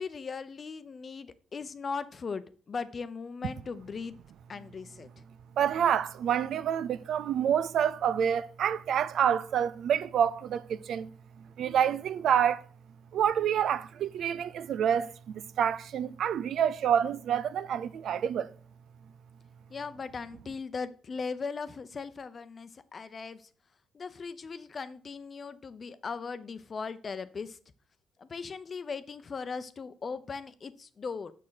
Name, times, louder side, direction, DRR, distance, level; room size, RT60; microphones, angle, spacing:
voice 1, 0.0-4.1 4.5-5.1 19.7-23.5 23.9-27.6 28.2-31.3, left 5 dB, 40° left, 0.7 m, -38 dB
voice 2, 5.6-11.1 11.6-12.6 13.1-18.5, right 9 dB, 70° right, 0.5 m, -28 dB
6.6 x 6.4 x 5.7 m
cardioid pair, 90°, 0 cm